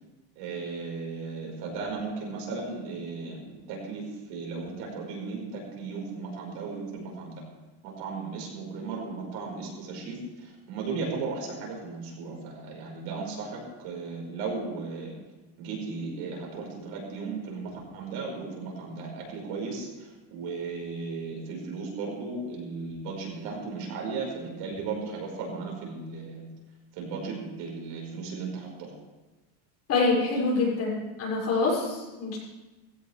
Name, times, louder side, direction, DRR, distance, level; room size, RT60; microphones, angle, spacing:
voice 1, 0.3-7.4 7.8-15.2 15.6-26.4 26.9-28.9, right 4 dB, 65° right, -1 dB, 5.1 m, -36 dB
voice 2, 29.9-32.4, left 3 dB, 30° left, -5 dB, 6.3 m, -26 dB
18.5 x 16.5 x 3.5 m, 1.1 s
cardioid pair, 160°, 48 cm